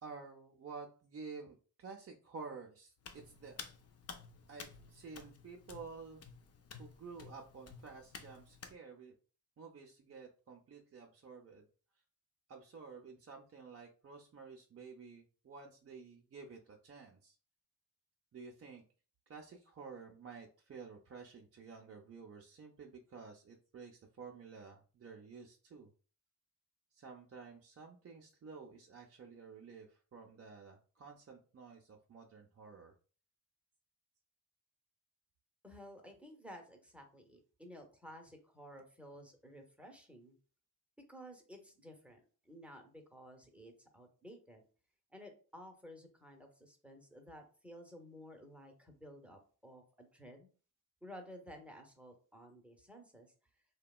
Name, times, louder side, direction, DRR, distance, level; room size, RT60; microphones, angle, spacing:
voice 1, 0.0-3.6 4.5-6.2 6.8-9.2 9.6-11.6 12.5-17.3 18.3-18.8 19.3-25.9 26.9-32.9, right 5 dB, 35° right, 0 dB, 0.5 m, -51 dB
Hands, 3.0-8.8, left 5 dB, 40° left, 0.4 m, -53 dB
voice 2, 35.6-40.4 41.1-44.6 45.1-50.5 51.0-53.3, equal, 5° right, 3 dB, 0.7 m, -54 dB
2.8 x 2.2 x 2.3 m, 0.38 s
cardioid pair, 55°, 40 cm